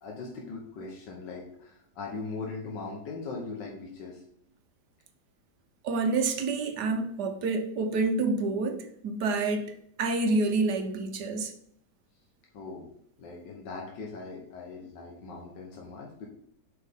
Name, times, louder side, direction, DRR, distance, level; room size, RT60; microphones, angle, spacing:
voice 1, 0.0-4.2 12.5-12.9 13.2-16.3, left 3 dB, 85° left, -1 dB, 1.8 m, -40 dB
voice 2, 5.8-9.7 10.0-11.5, right 3 dB, 70° right, 6 dB, 1.4 m, -28 dB
7.8 x 5.4 x 3.6 m, 0.69 s
omnidirectional pair, 1.9 m